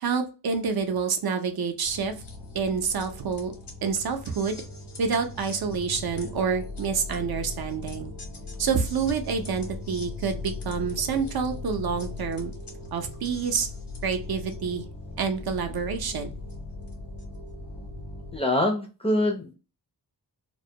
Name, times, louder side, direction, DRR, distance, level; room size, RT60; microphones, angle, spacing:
voice 1, 0.0-2.1 2.5-3.5 3.8-4.6 5.0-8.1 8.6-12.5 12.9-13.7 14.0-14.9 15.2-16.3, right 5 dB, 65° right, 6 dB, 0.5 m, -28 dB
sound 1, 1.8-18.4, left 3 dB, 85° left, 0.8 m, -39 dB
voice 2, 18.3-19.5, left 1 dB, 15° left, 1 dB, 0.3 m, -24 dB
2.2 x 2.1 x 2.6 m, 0.31 s
wide cardioid pair, 140°, 40 cm